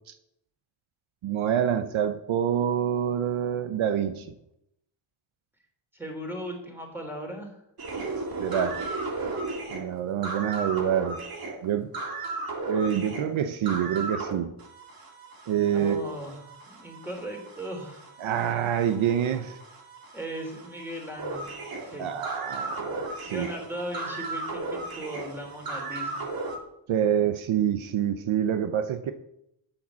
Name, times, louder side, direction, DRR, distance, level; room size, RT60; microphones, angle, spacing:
voice 1, 1.2-4.3 8.4-8.8 9.7-11.2 11.6-11.9 12.6-14.5 15.5-16.0 18.2-19.6 22.0-23.5 26.9-29.1, right 9 dB, 70° right, 9 dB, 1.0 m, -26 dB
voice 2, 5.9-7.6 15.6-18.1 18.5-18.6 20.1-21.5 21.8-22.2 23.3-26.3, equal, 5° right, 1 dB, 3.1 m, -38 dB
sound 1, 7.8-14.3 14.6-26.6, right 3 dB, 45° right, 2.7 m, -36 dB
9.0 x 8.6 x 7.4 m, 0.79 s
wide cardioid pair, 145°, 49 cm